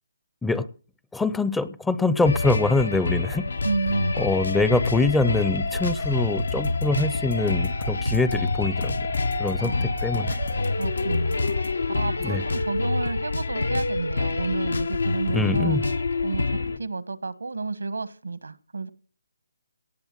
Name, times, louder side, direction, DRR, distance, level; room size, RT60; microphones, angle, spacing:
voice 1, 1.1-3.5 4.2-8.9 9.4-10.4 12.2-12.4 15.3-15.8, left 3 dB, 5° left, 0.5 m, -24 dB
sound 1, 2.2-16.8, left 3 dB, 85° left, 1.3 m, -27 dB
voice 2, 3.6-4.2 9.6-10.0 10.8-15.8 16.2-18.9, right 4 dB, 90° right, 1.3 m, -31 dB
sound 2, 3.7-11.5, right 6 dB, 60° right, 0.7 m, -37 dB
sound 3, 6.5-11.8, left 5 dB, 60° left, 2.2 m, -37 dB
18.0 x 6.9 x 7.5 m
hypercardioid pair, 150°, 0 cm